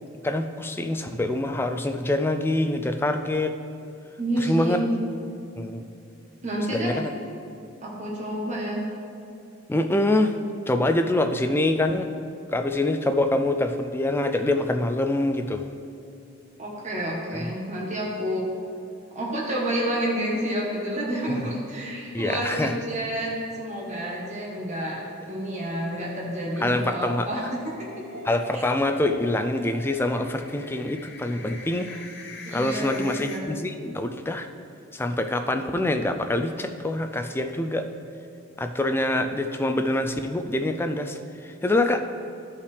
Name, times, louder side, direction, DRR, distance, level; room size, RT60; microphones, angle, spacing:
voice 1, 0.2-3.6 4.4-4.8 5.6-5.8 6.7-7.1 9.7-10.3 10.7-12.1 12.5-15.7 21.3-21.5 22.1-22.7 26.6-27.3 28.3-32.0 32.5-34.5 34.9-37.9 38.6-42.0, left 1 dB, 10° left, 7 dB, 0.3 m, -25 dB
voice 2, 4.2-4.9 6.4-7.0 7.8-8.8 16.6-18.5 19.1-27.6 28.5-28.6 32.4-33.5, right 1 dB, 35° right, -3 dB, 1.2 m, -29 dB
sound 1, 18.6-19.4 19.7-19.8 20.1-20.2 24.4-33.4, left 2 dB, 55° left, 0.8 m, -44 dB
13.5 x 5.6 x 3.3 m, 2.7 s
head